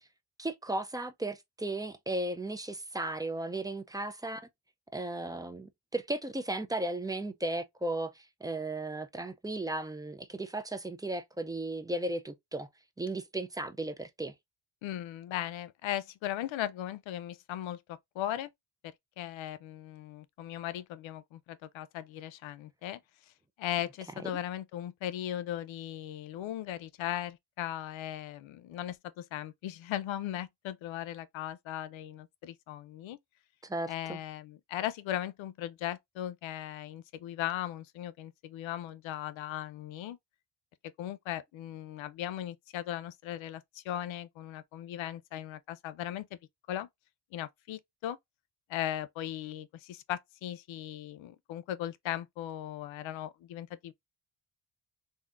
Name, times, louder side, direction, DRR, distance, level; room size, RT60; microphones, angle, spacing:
voice 1, 0.4-4.4 4.9-12.7 13.0-14.3 33.6-34.2, right 2 dB, 10° right, 0.3 m, -35 dB
voice 2, 14.8-18.5 18.8-23.0 23.6-33.2 33.9-40.2 41.0-46.3 46.7-46.9 47.3-48.2 48.7-53.9, left 12 dB, 80° left, 0.6 m, -38 dB
3.6 x 2.7 x 2.4 m
cardioid pair, 110°, 46 cm